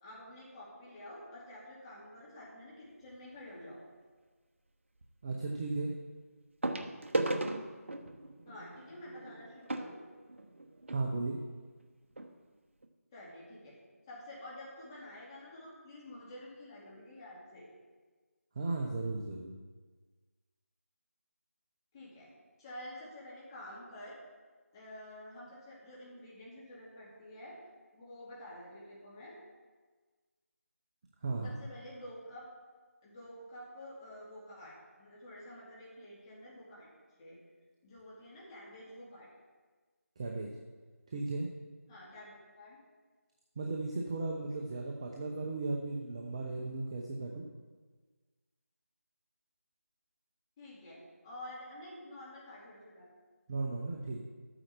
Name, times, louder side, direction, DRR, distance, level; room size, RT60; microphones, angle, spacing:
voice 1, 0.0-3.8 8.5-10.0 13.1-13.8 14.1-17.7 21.9-22.3 22.6-24.2 24.7-27.6 27.9-29.4 31.4-32.4 33.0-36.9 37.2-37.4 37.8-39.3 41.9-42.8 50.6-53.1, left 1 dB, 15° left, -7 dB, 2.4 m, -49 dB
sound 1, 3.0-3.3 5.0-5.1 6.6-11.0 11.8-11.9 12.1-12.3 12.8-12.9, right 2 dB, 50° right, 1.1 m, -37 dB
voice 2, 5.2-5.9 10.9-11.4 18.5-19.6 31.2-31.6 40.2-40.5 41.1-41.5 43.6-47.5 53.5-54.2, right 3 dB, 20° right, 0 dB, 0.8 m, -36 dB
12.5 x 8.9 x 4.4 m, 1.4 s
figure-of-eight pair, 165°, 8 cm